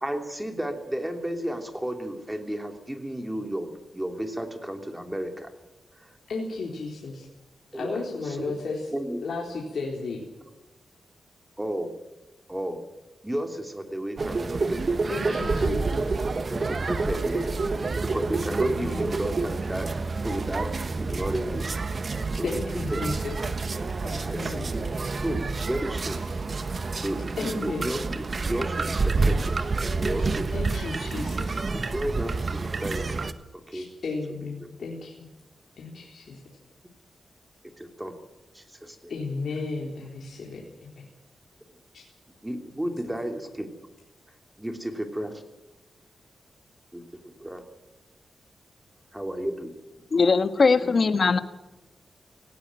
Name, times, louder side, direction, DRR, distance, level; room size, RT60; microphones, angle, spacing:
voice 1, 0.0-5.5 6.0-6.1 7.7-8.5 8.9-9.2 11.6-11.9 12.5-12.8 13.2-14.8 16.5-17.5 18.0-19.9 20.2-21.7 22.3-22.5 22.9-23.0 23.8-23.9 24.2-26.2 26.8-30.5 31.1-31.4 31.7-33.3 33.7-33.9 37.8-38.2 38.5-39.1 40.0-40.2 42.4-43.7 44.6-45.4 46.9-47.6 49.1-49.7, right 1 dB, 10° right, 5 dB, 3.1 m, -33 dB
voice 2, 6.3-7.3 7.7-8.9 9.2-10.2 15.1-16.2 16.9-17.1 18.6-19.1 22.4-23.6 24.0-24.7 26.2-26.4 27.4-28.0 30.5-31.6 33.7-35.3 35.8-36.4 39.1-41.1 41.9-42.0, left 3 dB, 70° left, -2 dB, 4.0 m, -34 dB
sound 1, 14.2-33.3, right 3 dB, 45° right, 1.3 m, -28 dB
voice 3, 50.1-51.4, left 4 dB, 50° left, 10 dB, 1.5 m, -20 dB
18.0 x 17.5 x 9.1 m, 1.0 s
wide cardioid pair, 95°, 0 cm